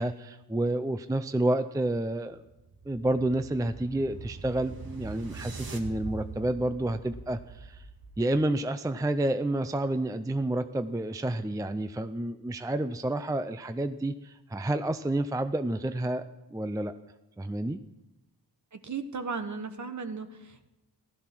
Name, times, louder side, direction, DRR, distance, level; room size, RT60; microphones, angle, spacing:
voice 1, 0.0-2.4 2.9-7.8 8.2-16.2 16.5-16.9 17.4-17.8, right 1 dB, 10° right, 10 dB, 0.4 m, -29 dB
sound 1, 2.3-8.5, right 4 dB, 60° right, 1.9 m, -43 dB
voice 2, 18.8-20.7, right 5 dB, 45° right, 8 dB, 1.3 m, -36 dB
15.5 x 13.0 x 6.1 m, 1.0 s
wide cardioid pair, 130°, 40 cm